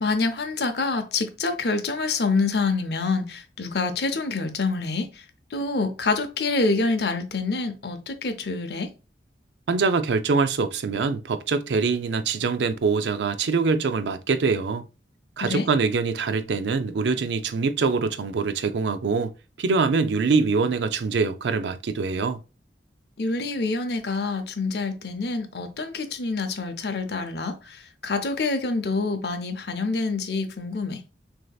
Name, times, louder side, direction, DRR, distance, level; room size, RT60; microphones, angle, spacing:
voice 1, 0.0-5.2 5.5-8.9 15.4-15.7 23.2-31.0, left 3 dB, 65° left, 0.7 m, -26 dB
voice 2, 9.7-14.9 15.4-19.3 19.6-22.4, right 4 dB, 75° right, 0.4 m, -24 dB
6.3 x 2.8 x 2.3 m
head